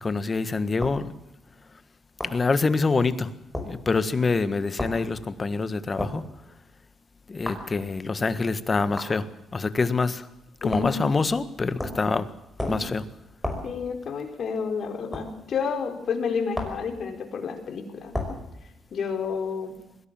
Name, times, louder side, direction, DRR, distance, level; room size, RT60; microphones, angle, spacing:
voice 1, 0.0-1.1 2.2-3.3 3.6-6.3 7.3-9.3 9.5-10.3 10.6-12.3 12.7-13.0, left 4 dB, 30° left, 13 dB, 1.6 m, -25 dB
sound 1, 0.8-1.0 2.2-2.4 3.5-3.7 4.8-5.0 6.0-6.2 7.4-7.7 9.0-9.1 10.7-11.0 11.8-12.1 12.6-12.9 13.4-13.7 15.1-15.3 16.5-16.8 18.1-18.4, left 1 dB, 5° left, 5.7 m, -32 dB
voice 2, 10.6-11.0 13.6-18.1 18.9-19.7, left 5 dB, 55° left, 4 dB, 4.6 m, -30 dB
21.5 x 17.0 x 7.7 m, 0.87 s
cardioid pair, 90°, 0 cm